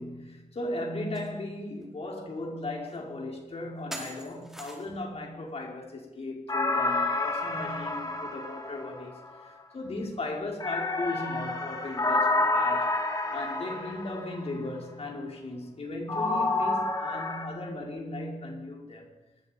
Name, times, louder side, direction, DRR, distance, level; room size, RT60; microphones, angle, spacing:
voice 1, 0.0-13.0 13.3-19.1, left 2 dB, 55° left, 5.3 m, -37 dB
sound 1, 1.1-1.3 1.8-1.9 2.9-3.0 3.9-5.0, equal, 5° right, 4.9 m, -42 dB
sound 2, 6.5-9.3 10.6-14.4 16.1-17.4, left 2 dB, 30° left, 3.0 m, -29 dB
26.0 x 21.5 x 5.4 m
wide cardioid pair, 135°, 12 cm